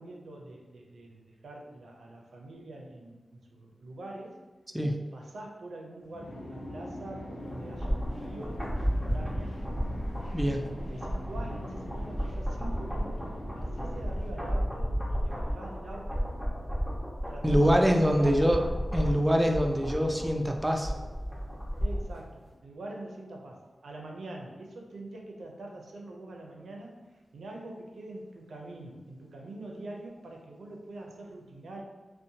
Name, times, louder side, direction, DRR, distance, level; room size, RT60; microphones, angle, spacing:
voice 1, 0.0-4.4 5.1-9.6 10.9-16.3 17.3-18.6 21.8-27.0 27.3-31.8, right 2 dB, 85° right, 0 dB, 0.4 m, -44 dB
sound 1, 6.1-15.1, left 1 dB, 85° left, 0.4 m, -43 dB
sound 2, 7.5-22.2 22.5-22.6, equal, 5° left, 0.9 m, -33 dB
voice 2, 17.4-18.6 18.9-20.9, equal, 15° right, 3 dB, 0.3 m, -24 dB
2.6 x 2.1 x 2.7 m, 1.2 s
cardioid pair, 60°, 0 cm